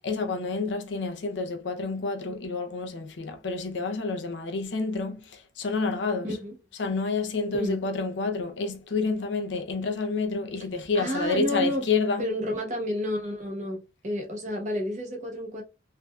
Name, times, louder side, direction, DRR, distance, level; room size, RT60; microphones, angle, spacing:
voice 1, 0.0-6.4 6.8-12.3, left 4 dB, 75° left, 0.6 m, -29 dB
voice 2, 10.9-11.8 12.2-15.6, equal, 40° right, 0.9 m, -30 dB
3.3 x 2.6 x 2.2 m
head